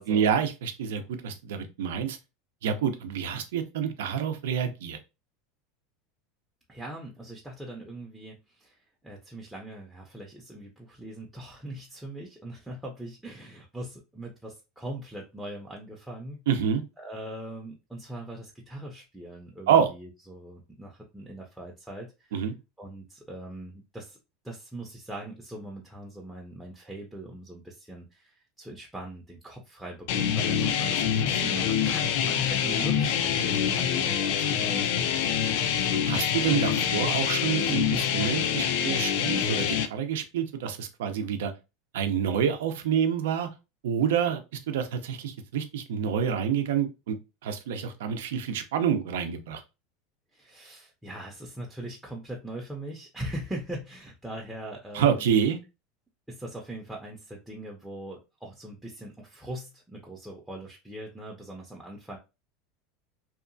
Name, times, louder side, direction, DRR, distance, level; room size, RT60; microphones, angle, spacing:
voice 1, 0.1-2.2 2.6-5.0 16.5-16.8 19.7-19.9 22.3-22.5 36.1-41.5 41.9-43.5 43.8-47.2 47.4-49.6 54.9-55.6, right 8 dB, 85° right, 7 dB, 0.5 m, -27 dB
voice 2, 6.7-16.4 17.0-22.4 22.8-24.2 24.4-35.1 50.3-55.3 56.3-62.2, right 1 dB, 5° right, -2 dB, 0.5 m, -41 dB
sound 1, 30.1-39.9, left 8 dB, 65° left, 0.3 m, -26 dB
2.7 x 2.3 x 2.5 m, 0.27 s
supercardioid pair, 135°, 0 cm